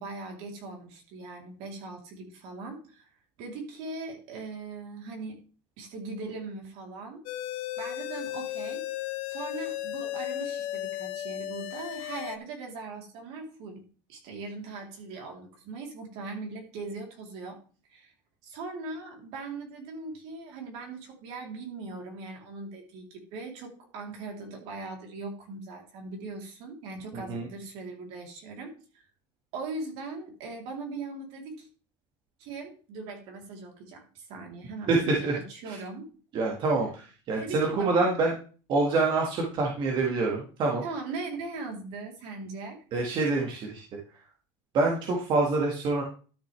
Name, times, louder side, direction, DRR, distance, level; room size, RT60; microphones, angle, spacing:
voice 1, 0.0-3.1 3.4-5.4 5.8-7.2 7.8-8.9 9.3-13.8 14.1-17.6 17.9-18.1 18.4-29.1 29.5-31.7 32.4-36.1 37.4-38.1 40.8-42.8, right 3 dB, 60° right, 1 dB, 3.4 m, -40 dB
sound 1, 7.3-12.4, left 13 dB, 60° left, 0.8 m, -35 dB
voice 2, 27.1-27.5 34.9-35.4 35.7-35.8 36.3-38.3 38.7-40.8 42.9-43.8 44.7-46.0, right 3 dB, 45° right, -1 dB, 1.8 m, -26 dB
12.5 x 6.4 x 3.4 m, 0.38 s
supercardioid pair, 130°, 12 cm